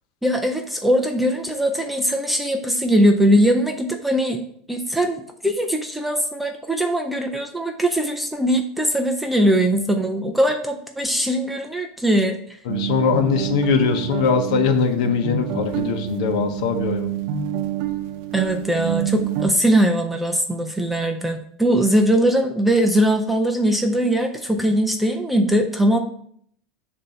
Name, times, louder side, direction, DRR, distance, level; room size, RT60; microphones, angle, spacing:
voice 1, 0.2-12.4 18.3-26.0, right 1 dB, 5° right, 3 dB, 0.3 m, -20 dB
voice 2, 12.7-17.1, left 5 dB, 70° left, 5 dB, 0.9 m, -21 dB
sound 1, 12.7-19.5, right 10 dB, 50° right, 0.7 m, -27 dB
6.8 x 2.6 x 5.5 m, 0.65 s
supercardioid pair, 165°, 4 cm